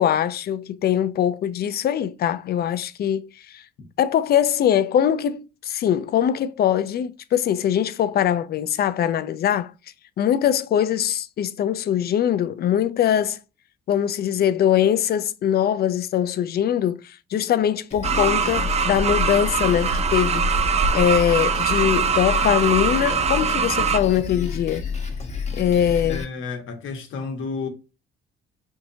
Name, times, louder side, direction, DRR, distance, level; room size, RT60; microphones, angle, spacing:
voice 1, 0.0-3.6 4.0-9.7 10.2-13.4 13.9-20.5 20.9-24.8 25.6-26.2, left 10 dB, 50° left, 0.4 m, -22 dB
Drum kit, 17.9-26.2, left 5 dB, 35° left, 0.9 m, -30 dB
sound 1, 18.0-24.0, right 6 dB, 35° right, 0.4 m, -22 dB
voice 2, 26.0-27.7, left 4 dB, 75° left, 1.0 m, -31 dB
4.4 x 2.8 x 2.6 m
cardioid pair, 90°, 20 cm